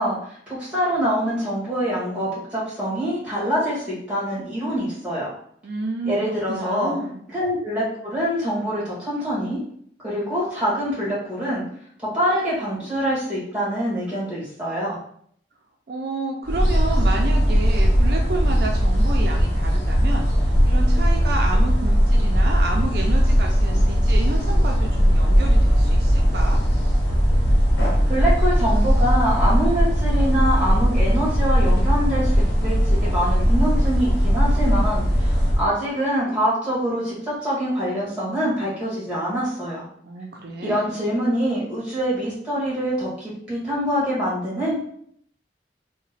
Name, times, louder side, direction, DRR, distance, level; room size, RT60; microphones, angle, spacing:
voice 1, 0.0-5.3 6.0-6.9 7.3-9.6 10.0-11.6 12.0-15.0 28.1-39.8 40.6-44.8, equal, 5° right, -8 dB, 1.3 m, -25 dB
voice 2, 5.6-7.2 15.9-26.6 40.0-40.9, right 2 dB, 60° right, 0 dB, 0.4 m, -30 dB
sound 1, 16.4-35.6, equal, 80° left, 0.9 m, -18 dB
2.9 x 2.1 x 4.0 m, 0.65 s
head